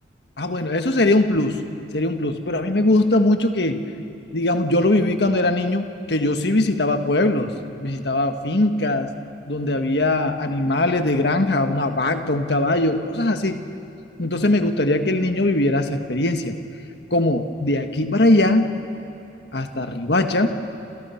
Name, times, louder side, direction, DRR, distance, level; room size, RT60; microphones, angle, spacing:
voice 1, 0.4-1.6 1.9-3.8 4.3-7.5 7.8-9.1 9.5-13.6 14.2-16.6 17.1-18.7 19.5-20.5, left 2 dB, 70° left, 6 dB, 1.6 m, -20 dB
28.5 x 28.0 x 5.9 m, 2.8 s
head